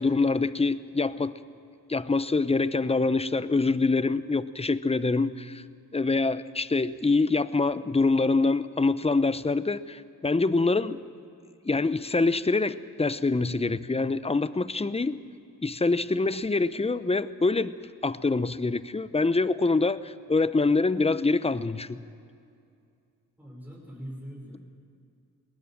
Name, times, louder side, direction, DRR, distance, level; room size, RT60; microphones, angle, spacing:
voice 1, 0.0-1.4 1.9-5.6 5.9-11.0 11.7-15.2 15.6-17.7 18.0-22.0, left 3 dB, 20° left, 15 dB, 0.8 m, -25 dB
voice 2, 23.4-24.6, equal, 5° right, -3 dB, 6.2 m, -41 dB
20.0 x 18.5 x 7.6 m, 2.4 s
cardioid pair, 50°, 34 cm